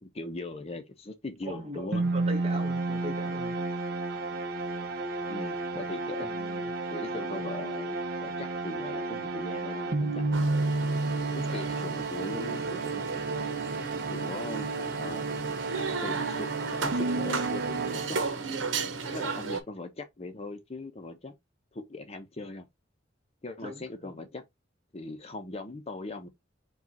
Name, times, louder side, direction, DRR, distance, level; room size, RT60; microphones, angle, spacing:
voice 1, 0.0-2.0 5.3-6.3 6.9-10.6 11.3-13.1 14.1-15.3 15.8-16.5 16.8-18.2 19.1-21.4 21.7-22.7 23.4-24.4 24.9-26.3, left 2 dB, 35° left, 0.7 m, -40 dB
voice 2, 1.4-3.6 6.2-6.7 7.0-7.3 23.6-24.1, equal, 30° right, 1.2 m, -40 dB
sound 1, 1.9-18.7, right 3 dB, 55° right, 0.6 m, -32 dB
sound 2, 10.3-19.6, right 4 dB, 85° right, 0.9 m, -35 dB
4.9 x 2.4 x 4.1 m
head